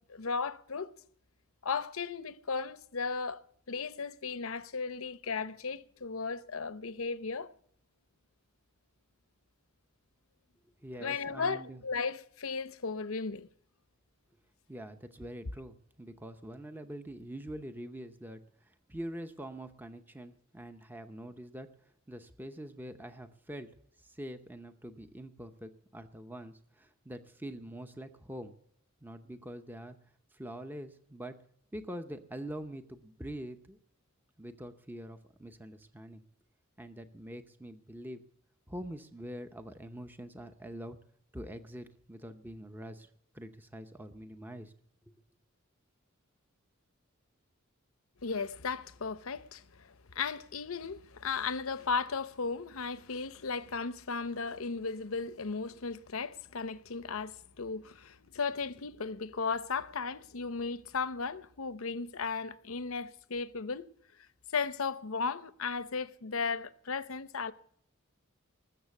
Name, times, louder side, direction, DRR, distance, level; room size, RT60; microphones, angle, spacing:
voice 1, 0.1-0.9 1.6-3.4 3.7-7.5 11.0-13.5 48.2-63.9 64.5-67.5, left 5 dB, 75° left, 0.8 m, -35 dB
voice 2, 10.8-11.8 14.7-21.7 22.1-23.7 24.0-28.5 29.0-30.0 30.3-31.4 31.7-33.8 34.4-36.2 36.8-38.2 38.7-41.0 41.3-43.1 43.3-44.7 45.1-45.2, right 1 dB, 10° right, 0.7 m, -44 dB
20.5 x 7.3 x 7.1 m
head